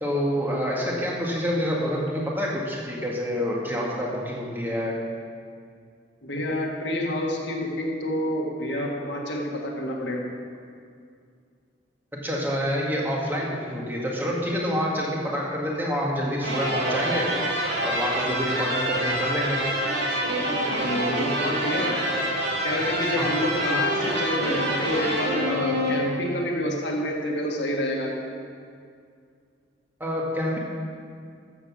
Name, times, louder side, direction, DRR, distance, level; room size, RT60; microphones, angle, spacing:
voice 1, 0.0-4.9 12.1-17.3 17.8-19.6 23.2-23.3 30.0-30.6, equal, 10° right, -3 dB, 1.9 m, -27 dB
voice 2, 6.2-10.3 20.5-22.0 22.6-28.2, left 1 dB, 70° left, -1 dB, 1.7 m, -28 dB
sound 1, 16.4-26.4, equal, 65° right, 2.8 m, -26 dB
13.5 x 7.8 x 6.2 m, 2.3 s
head